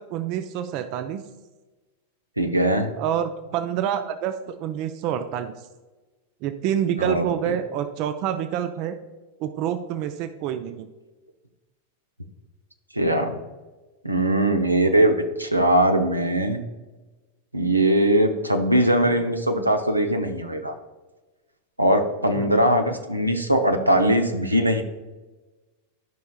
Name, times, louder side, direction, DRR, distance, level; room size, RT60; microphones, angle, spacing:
voice 1, 0.1-1.2 3.0-5.5 6.4-9.0 9.4-10.9 22.3-22.5, right 9 dB, 40° right, 10 dB, 0.4 m, -27 dB
voice 2, 2.4-2.9 7.0-7.3 12.9-13.4 14.0-16.6 17.5-20.7 21.8-24.8, right 1 dB, 85° right, 5 dB, 0.7 m, -21 dB
12.5 x 5.5 x 2.3 m, 1.2 s
figure-of-eight pair, 90°, 0 cm